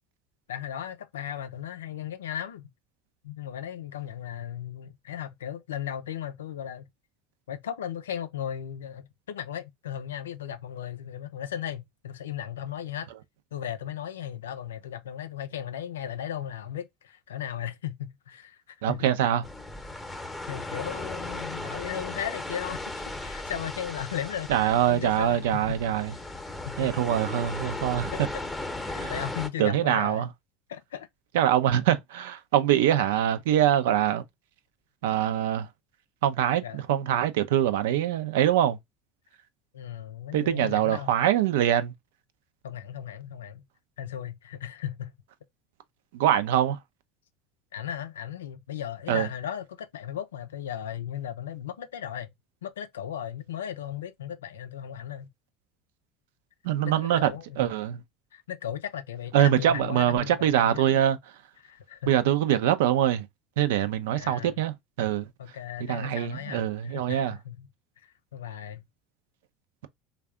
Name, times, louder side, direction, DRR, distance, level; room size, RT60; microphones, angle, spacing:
voice 1, 0.5-2.7 3.2-6.9 7.5-13.1 13.5-19.1 20.5-25.8 26.1-26.2 26.6-26.9 28.1-28.2 28.8-30.3 30.7-31.1 36.6-36.8 39.7-41.2 42.6-43.6 44.0-45.1 47.7-52.3 52.6-55.3 56.8-57.7 58.3-61.0 61.6-62.1 64.1-64.6 65.4-67.7 68.0-68.8, left 10 dB, 85° left, 0.5 m, -36 dB
voice 2, 18.8-19.4 24.5-26.1 26.8-28.1 29.0-29.1 29.6-30.3 31.3-34.2 35.0-35.7 36.2-38.8 40.3-41.9 46.1-46.8 49.1-49.3 56.6-57.3 57.6-58.0 59.3-61.2 62.1-63.3 63.6-65.3 65.9-67.4, right 11 dB, 80° right, 0.5 m, -24 dB
sound 1, 19.4-29.5, left 2 dB, 5° left, 0.8 m, -36 dB
3.3 x 2.3 x 3.5 m
hypercardioid pair, 80°, 0 cm